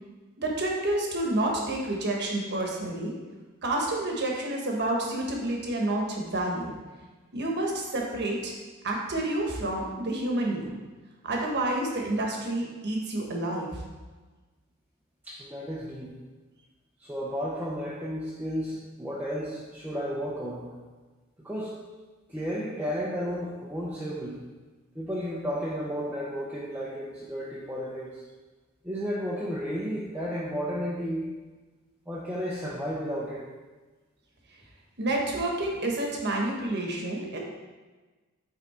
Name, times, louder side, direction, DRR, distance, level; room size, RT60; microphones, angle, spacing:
voice 1, 0.4-3.1 3.6-6.7 7.3-8.5 8.8-10.7 11.2-13.8 35.0-37.4, right 1 dB, 50° right, -1 dB, 1.3 m, -29 dB
voice 2, 15.2-16.1 17.0-20.7 21.4-21.8 22.3-24.4 24.9-28.2 28.8-31.3 32.1-33.4, equal, 5° right, -7 dB, 0.7 m, -33 dB
8.4 x 3.7 x 4.3 m, 1.3 s
head